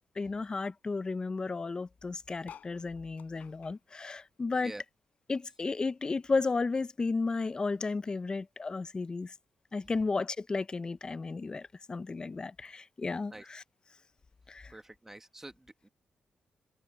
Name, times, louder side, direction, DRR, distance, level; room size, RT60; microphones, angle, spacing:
voice 1, 0.2-4.7 5.3-9.3 9.7-13.6 14.5-14.7, left 4 dB, 30° left, 0.6 m, -33 dB
sound 1, 2.4-5.2 5.5-7.0 7.5-7.6 7.8-7.9 8.1-8.5 9.3-9.4, left 8 dB, 70° left, 5.0 m, -55 dB
voice 2, 14.7-15.9, right 2 dB, 15° right, 1.6 m, -47 dB
cardioid pair, 90°, 3 cm